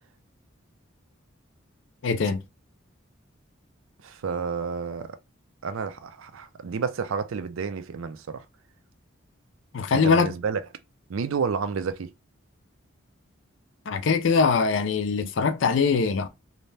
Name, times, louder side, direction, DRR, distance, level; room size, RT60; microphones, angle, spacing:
voice 1, 2.0-2.4 9.7-10.3 13.9-16.3, left 5 dB, 65° left, 0.4 m, -22 dB
voice 2, 4.0-5.1 5.6-8.4 9.9-10.6 11.1-12.1, right 5 dB, 85° right, 0.4 m, -30 dB
2.7 x 2.1 x 3.1 m
head